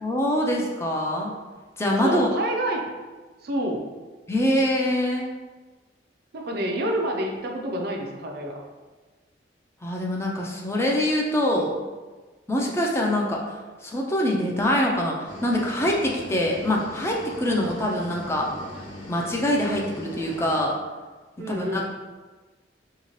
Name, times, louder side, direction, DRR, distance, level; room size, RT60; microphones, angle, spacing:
voice 1, 0.0-1.3 1.8-2.3 4.3-5.3 9.8-11.8 12.5-13.4 13.8-18.5 19.1-20.8 21.5-21.8, left 1 dB, 15° left, -1 dB, 0.4 m, -24 dB
voice 2, 2.0-2.9 3.4-3.8 6.3-8.6 12.6-12.7 17.5-17.6 21.4-21.8, right 1 dB, 60° right, 1 dB, 0.4 m, -28 dB
sound 1, 15.2-20.6, left 1 dB, 85° left, 1.0 m, -39 dB
2.8 x 2.7 x 3.0 m, 1.3 s
head